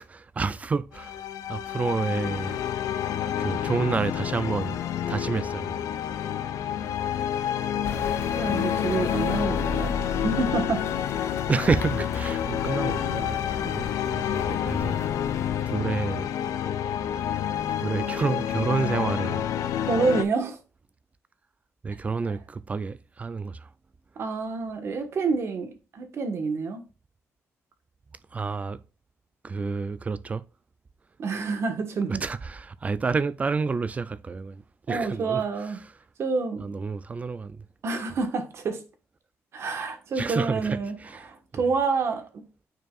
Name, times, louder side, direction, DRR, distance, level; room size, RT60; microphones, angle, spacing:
voice 1, 0.0-2.6 3.4-4.8 5.1-5.8 11.5-15.0 15.6-16.3 17.5-19.5 21.8-23.7 28.3-28.8 29.4-30.4 32.1-34.6 34.9-35.8 36.6-37.6 40.2-41.6, right 4 dB, 25° right, 0.3 m, -29 dB
sound 1, 0.9-20.2, left 9 dB, 90° left, 0.5 m, -29 dB
sound 2, 7.8-15.6, left 4 dB, 50° left, 0.7 m, -35 dB
voice 2, 8.4-9.9 10.2-10.8 19.9-20.6 24.2-26.8 31.2-32.2 34.9-35.8 36.2-36.6 37.8-38.8 39.5-41.0 41.2-42.4, right 4 dB, 55° right, 1.3 m, -28 dB
9.1 x 4.5 x 2.4 m
cardioid pair, 130°, 5 cm